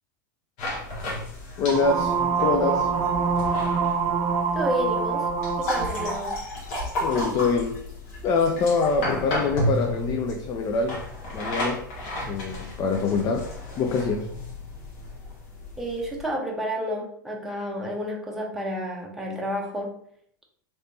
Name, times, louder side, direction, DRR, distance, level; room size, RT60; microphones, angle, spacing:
sound 1, 0.6-16.3, left 1 dB, 55° left, 1.3 m, -33 dB
voice 1, 1.6-2.9 7.0-7.8 8.2-11.0 11.3-11.9 12.3-13.5 13.8-14.3, left 4 dB, 35° left, 4 dB, 0.4 m, -25 dB
sound 2, 1.7-6.2, right 5 dB, 35° right, 0.6 m, -25 dB
voice 2, 4.5-5.3 5.6-6.4 15.8-19.9, equal, ahead, -2 dB, 0.7 m, -30 dB
3.2 x 3.0 x 2.7 m, 0.64 s
hypercardioid pair, 100°, 11 cm